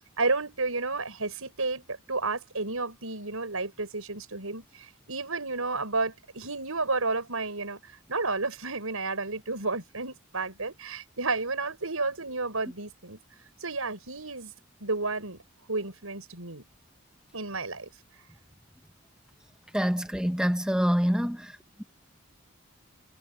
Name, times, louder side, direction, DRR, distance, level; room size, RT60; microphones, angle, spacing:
voice 1, 0.2-7.8 8.1-13.2 13.6-14.5 14.8-15.4 15.7-16.6 17.3-17.9, right 3 dB, 90° right, 6.9 m, -31 dB
voice 2, 19.7-21.5, equal, 5° right, 1.3 m, -26 dB
head